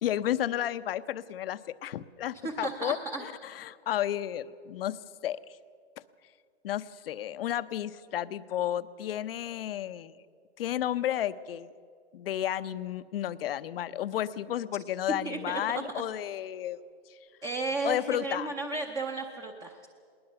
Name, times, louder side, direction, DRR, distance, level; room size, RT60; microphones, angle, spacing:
voice 1, 0.0-5.0 5.2-5.4 6.6-10.1 10.6-11.7 12.1-16.8 17.8-18.5, left 11 dB, 60° left, 15 dB, 0.8 m, -32 dB
voice 2, 2.4-3.2 15.2-16.0 17.4-19.9, right 3 dB, 10° right, 4 dB, 0.7 m, -34 dB
20.0 x 19.5 x 6.9 m, 2.2 s
hypercardioid pair, 150°, 33 cm